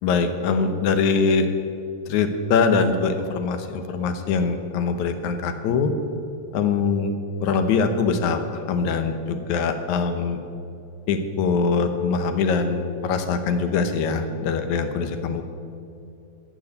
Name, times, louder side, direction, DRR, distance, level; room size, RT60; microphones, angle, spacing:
voice 1, 0.0-1.5 2.1-5.9 6.5-7.1 7.4-10.4 11.1-15.4, left 5 dB, 80° left, 8 dB, 2.3 m, -23 dB
12.5 x 8.8 x 8.2 m, 2.6 s
omnidirectional pair, 3.3 m